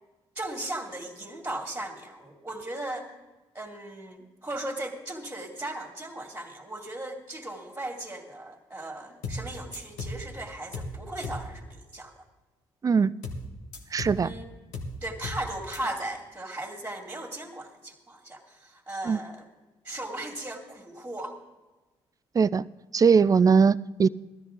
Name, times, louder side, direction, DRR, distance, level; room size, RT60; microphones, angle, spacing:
voice 1, 0.4-3.1 3.5-12.2 14.0-14.5 15.0-19.5 19.8-21.4, right 1 dB, 10° right, 2 dB, 2.6 m, -37 dB
sound 1, 9.2-9.5 9.7-10.2 10.7-11.0 11.2-11.5 13.2-13.5 13.7-14.2 14.7-15.0 15.2-15.5 15.7-15.8, left 2 dB, 75° left, 1.6 m, -35 dB
voice 2, 13.9-14.3 19.1-19.2 22.3-22.6 22.9-24.1, right 5 dB, 30° right, 18 dB, 0.4 m, -20 dB
16.5 x 13.0 x 3.8 m, 1.1 s
hypercardioid pair, 50°, 13 cm